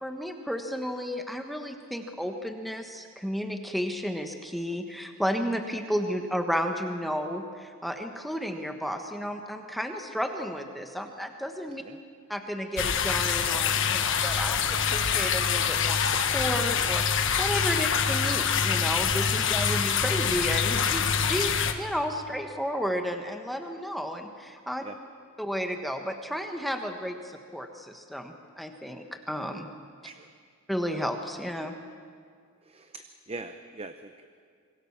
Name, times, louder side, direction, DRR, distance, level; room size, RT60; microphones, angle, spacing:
voice 1, 0.0-11.8 12.3-24.8 25.4-29.7 30.7-31.7, equal, ahead, 4 dB, 1.3 m, -32 dB
sound 1, 12.8-21.7, left 7 dB, 60° left, 1.4 m, -25 dB
voice 2, 32.6-34.3, right 3 dB, 25° right, 8 dB, 0.8 m, -42 dB
26.5 x 23.0 x 7.3 m, 2.1 s
head